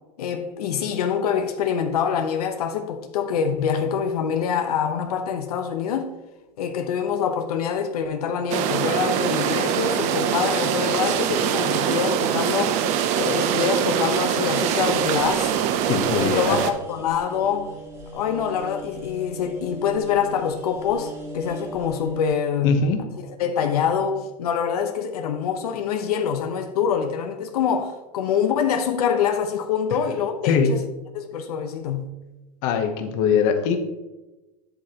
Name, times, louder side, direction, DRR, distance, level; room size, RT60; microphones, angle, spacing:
voice 1, 0.2-6.1 6.6-12.8 13.2-15.6 16.2-17.7 18.1-22.8 23.4-30.8 31.1-32.1, left 7 dB, 85° left, 0.9 m, -25 dB
sound 1, 8.5-16.7, right 9 dB, 40° right, 0.6 m, -23 dB
sound 2, 14.8-22.3, equal, 15° right, 1.4 m, -39 dB
voice 2, 15.9-16.7 22.6-23.0 30.4-30.7 32.6-33.8, left 6 dB, 45° left, 1.0 m, -21 dB
8.1 x 8.1 x 2.9 m
supercardioid pair, 150°, 19 cm